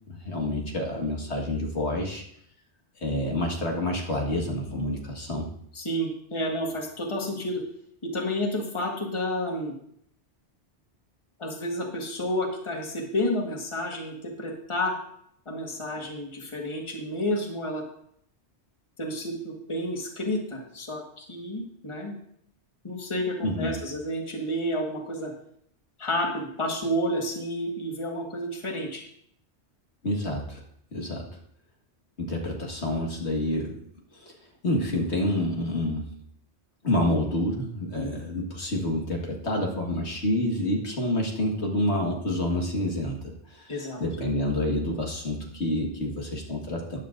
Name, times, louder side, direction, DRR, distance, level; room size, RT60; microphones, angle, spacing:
voice 1, 0.1-2.2 3.0-5.5 23.4-23.8 30.0-30.6 30.9-31.2 32.2-33.8 34.2-34.3 34.6-36.1 36.8-43.2 43.5-47.0, left 1 dB, 70° left, 0 dB, 1.9 m, -28 dB
voice 2, 5.7-7.6 8.0-9.7 11.4-15.0 15.4-17.8 19.0-22.2 22.8-25.3 26.0-29.0 37.9-38.1 43.7-44.0, left 1 dB, 25° left, 1 dB, 1.5 m, -30 dB
13.5 x 9.6 x 2.5 m, 0.68 s
omnidirectional pair, 1.2 m